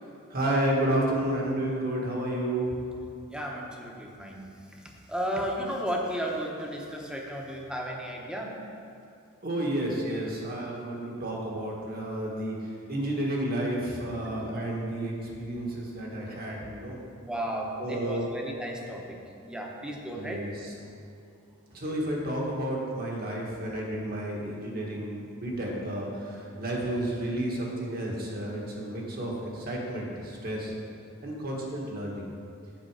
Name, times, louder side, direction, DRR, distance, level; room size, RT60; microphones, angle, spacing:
voice 1, 0.3-2.8 9.4-17.0 17.8-18.3 20.1-20.7 21.7-30.7 31.2-32.3, right 1 dB, 50° right, -2 dB, 1.6 m, -31 dB
voice 2, 3.3-8.6 17.2-20.5, equal, 5° right, -1 dB, 0.9 m, -34 dB
7.8 x 6.9 x 4.8 m, 2.6 s
head